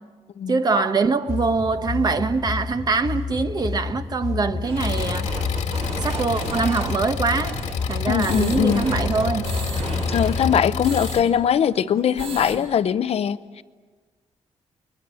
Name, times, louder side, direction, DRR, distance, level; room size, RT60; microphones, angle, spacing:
voice 1, 0.5-5.3 6.0-7.6 7.9-9.4, right 4 dB, 35° right, 1.2 m, -23 dB
sound 1, 1.3-10.6, left 4 dB, 30° left, 1.6 m, -30 dB
sound 2, 4.6-11.2 11.5-11.6 11.9-12.6, right 3 dB, 65° right, 5.6 m, -33 dB
Engine, 4.8-11.2, left 6 dB, 85° left, 2.0 m, -30 dB
voice 2, 8.1-8.8 10.1-13.6, left 8 dB, 65° left, 0.8 m, -21 dB
30.0 x 22.0 x 7.7 m
wide cardioid pair, 140°, 11 cm